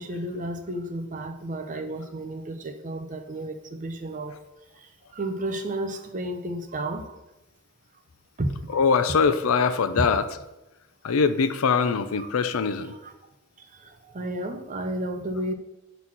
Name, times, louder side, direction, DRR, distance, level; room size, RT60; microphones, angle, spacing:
voice 1, 0.0-4.4 4.7-7.2 8.4-8.8 10.0-10.1 11.7-11.9 12.2-12.3 12.8-13.1 13.6-15.5, right 1 dB, 35° right, 6 dB, 0.6 m, -32 dB
voice 2, 8.7-10.3 11.0-12.9, left 5 dB, 75° left, 11 dB, 0.5 m, -22 dB
6.3 x 4.0 x 5.7 m, 0.96 s
head